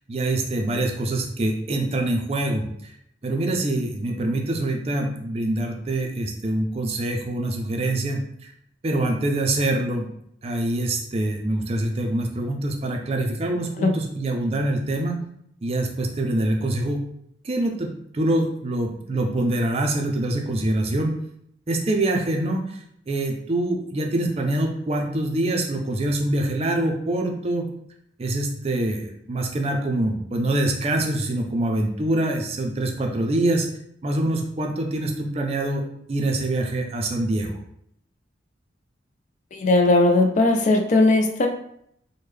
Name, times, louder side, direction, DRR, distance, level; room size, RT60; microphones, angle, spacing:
voice 1, 0.1-2.6 3.2-8.5 8.8-10.1 10.4-15.2 15.6-17.0 17.4-17.9 18.1-21.1 21.7-22.8 23.1-27.7 28.2-33.7 34.0-37.6, right 1 dB, 30° right, 2 dB, 0.4 m, -25 dB
voice 2, 39.5-41.5, left 2 dB, 40° left, 4 dB, 0.3 m, -18 dB
3.5 x 2.1 x 3.1 m, 0.71 s
head